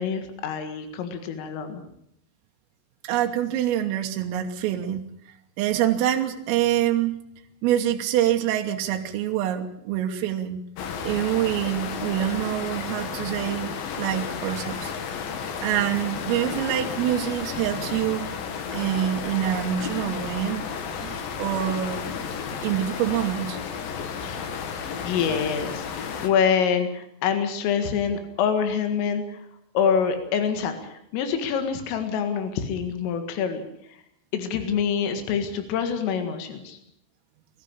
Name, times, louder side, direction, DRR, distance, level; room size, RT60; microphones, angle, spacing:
voice 1, 0.0-1.8 24.2-24.5 25.0-29.4 29.8-33.6 34.3-36.8, left 7 dB, 80° left, 7 dB, 4.4 m, -26 dB
voice 2, 3.0-5.0 5.6-7.2 7.6-10.6 11.0-14.9 15.6-18.3 18.7-20.6 21.0-22.1 22.6-23.6, right 11 dB, 80° right, 3 dB, 3.8 m, -25 dB
sound 1, 10.8-26.3, left 6 dB, 60° left, 2.7 m, -33 dB
21.5 x 14.0 x 8.8 m, 0.75 s
omnidirectional pair, 5.8 m